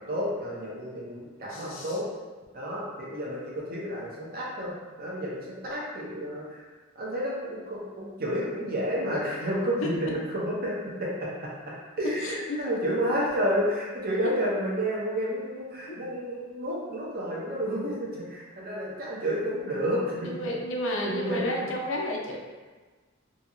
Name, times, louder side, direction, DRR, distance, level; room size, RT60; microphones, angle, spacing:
voice 1, 0.0-2.1 2.5-6.6 7.0-11.3 12.0-20.3 21.1-21.7, equal, 45° right, -5 dB, 0.6 m, -30 dB
voice 2, 1.5-2.0 9.8-9.9 12.2-12.7 15.9-16.1 20.2-22.4, left 1 dB, 65° left, 0 dB, 0.5 m, -32 dB
2.7 x 2.7 x 2.5 m, 1.3 s
head